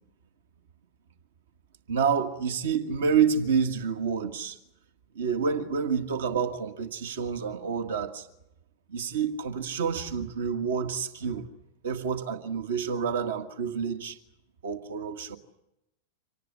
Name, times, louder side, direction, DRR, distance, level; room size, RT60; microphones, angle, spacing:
voice 1, 1.9-4.6 5.1-8.3 8.9-11.5 11.8-14.2 14.6-15.4, right 6 dB, 60° right, 1.7 m, -28 dB
25.5 x 18.5 x 9.7 m
figure-of-eight pair, 90°, 0 cm